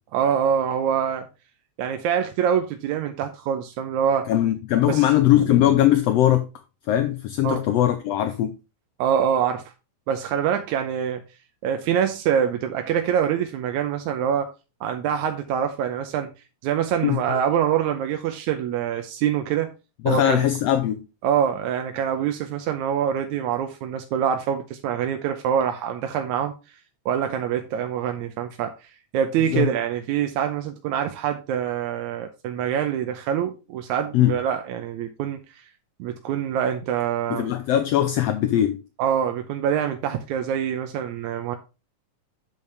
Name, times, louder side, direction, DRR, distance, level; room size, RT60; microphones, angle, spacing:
voice 1, 0.1-1.3 1.8-4.3 4.9-5.1 5.4-5.5 7.4-7.6 9.0-9.6 10.1-11.2 11.6-14.5 14.8-16.3 16.6-19.7 20.1-20.5 21.2-26.5 27.1-28.7 29.1-35.4 36.0-37.5 39.0-41.6, right 8 dB, 90° right, 2.2 m, -25 dB
voice 2, 4.3-6.5 6.9-8.6 17.0-17.4 20.0-21.1 29.5-29.7 34.1-34.4 37.3-38.8, left 12 dB, 75° left, 1.6 m, -20 dB
8.3 x 6.6 x 3.3 m
omnidirectional pair, 3.3 m